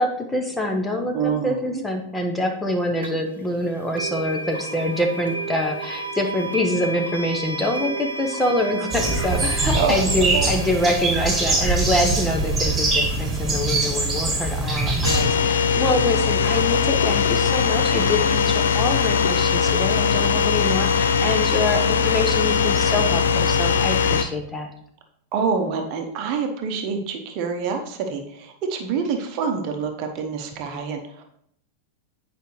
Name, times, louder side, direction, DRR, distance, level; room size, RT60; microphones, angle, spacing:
voice 1, 0.0-24.7, left 1 dB, 10° left, 2 dB, 0.9 m, -25 dB
voice 2, 1.1-1.8 9.7-10.5 15.9-16.1 25.3-31.2, right 5 dB, 45° right, 4 dB, 0.9 m, -26 dB
sound 1, 3.0-3.1 4.0-15.0, right 3 dB, 70° right, 0.9 m, -34 dB
sound 2, 8.9-15.2, right 2 dB, 15° right, 2.2 m, -23 dB
sound 3, 15.0-24.2, left 6 dB, 65° left, 0.5 m, -20 dB
9.2 x 5.1 x 3.1 m, 0.70 s
figure-of-eight pair, 90°, 0 cm